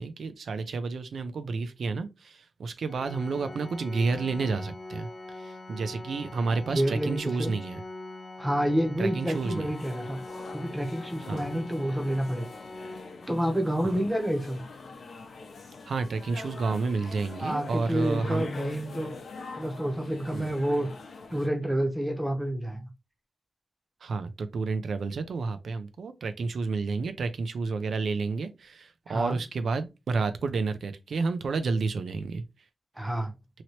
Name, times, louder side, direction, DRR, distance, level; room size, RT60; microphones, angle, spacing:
voice 1, 0.0-5.1 5.4-7.8 9.0-9.7 11.3-11.4 13.8-14.0 15.9-18.5 20.3-20.5 24.0-32.4, right 4 dB, 90° right, 0.4 m, -30 dB
Organ, 2.9-13.7, left 2 dB, 50° left, 0.7 m, -43 dB
voice 2, 6.7-7.5 8.4-10.2 10.5-12.5 13.3-14.6 17.4-19.2 19.6-20.9 21.3-22.8 29.1-29.4 33.0-33.3, equal, 10° right, 0.7 m, -28 dB
sound 1, 9.2-21.5, left 4 dB, 80° left, 0.6 m, -44 dB
2.9 x 2.8 x 3.0 m
wide cardioid pair, 170°, 0 cm